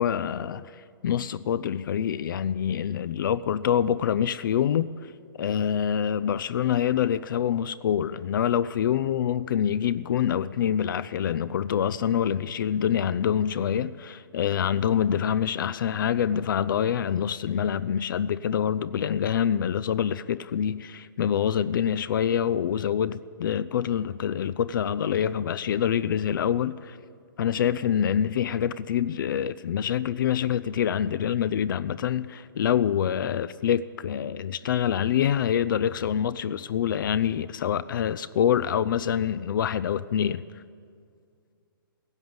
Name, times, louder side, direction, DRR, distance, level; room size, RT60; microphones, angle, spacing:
voice 1, 0.0-5.1 5.4-27.0 27.4-40.4, left 9 dB, 60° left, 0.5 m, -26 dB
15.5 x 10.5 x 7.9 m
hypercardioid pair, 145°, 12 cm